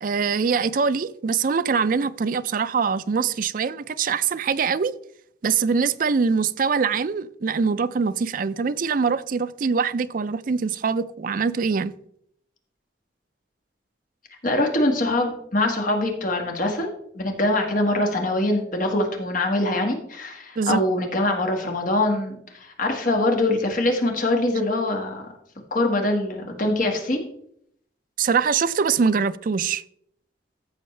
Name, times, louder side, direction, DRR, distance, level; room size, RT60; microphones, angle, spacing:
voice 1, 0.0-4.9 5.4-11.9 20.6-20.8 28.2-29.8, right 5 dB, 50° right, 0.4 m, -23 dB
voice 2, 14.4-16.9 17.1-25.3 25.7-27.2, left 1 dB, 45° left, 1.7 m, -23 dB
14.5 x 6.5 x 3.3 m
head